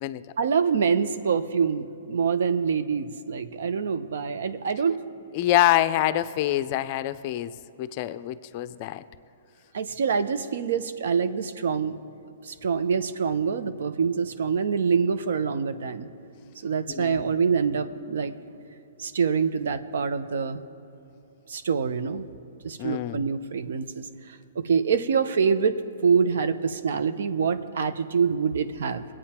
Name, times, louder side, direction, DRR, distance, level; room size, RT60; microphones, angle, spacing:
voice 1, 0.4-5.0 9.7-12.0 12.4-16.1 16.6-18.3 19.0-20.6 21.5-22.3 22.6-24.0 24.6-29.0, right 6 dB, 70° right, 10 dB, 0.8 m, -25 dB
voice 2, 5.3-7.5 7.8-9.0 16.9-17.3 22.8-23.3, left 14 dB, 40° left, 13 dB, 0.5 m, -25 dB
21.5 x 8.9 x 4.4 m, 2.9 s
hypercardioid pair, 135°, 0 cm